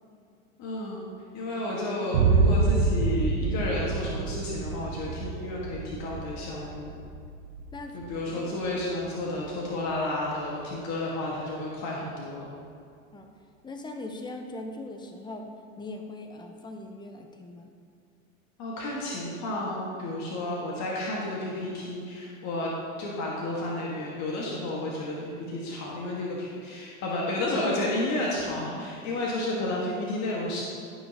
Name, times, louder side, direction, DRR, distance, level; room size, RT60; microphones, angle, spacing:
voice 1, 0.6-1.0 1.3-6.9 7.9-12.5 18.6-22.7 23.0-30.6, left 1 dB, 40° left, -4 dB, 1.6 m, -31 dB
Boom, 2.1-10.0, right 4 dB, 85° right, 0.9 m, -28 dB
voice 2, 13.6-15.5 15.8-17.7 28.7-28.9, left 2 dB, 10° left, 4 dB, 0.8 m, -40 dB
13.5 x 5.5 x 2.9 m, 2.3 s
hypercardioid pair, 100°, 41 cm